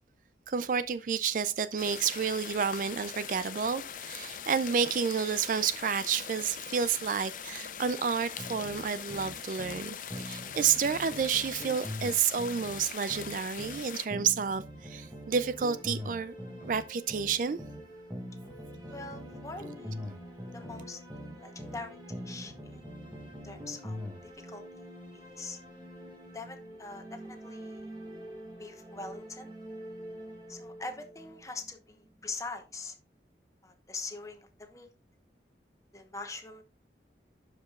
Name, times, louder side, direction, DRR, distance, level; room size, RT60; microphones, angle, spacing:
voice 1, 0.5-16.3 16.6-17.6, right 6 dB, 45° right, 0.3 m, -30 dB
sound 1, 1.8-14.1, left 8 dB, 45° left, 0.5 m, -42 dB
sound 2, 8.4-9.8 10.1-13.8 14.1-17.8 18.1-21.8 22.1-24.2, equal, 10° right, 1.0 m, -43 dB
sound 3, 14.3-32.2, equal, 25° right, 2.0 m, -48 dB
voice 2, 18.9-20.0 20.5-21.0 21.4-22.8 23.4-24.9 25.1-25.6 26.3-27.9 28.6-29.5 30.5-33.0 33.6-34.9 35.9-36.6, left 3 dB, 20° left, 0.9 m, -43 dB
12.0 x 5.1 x 2.3 m
head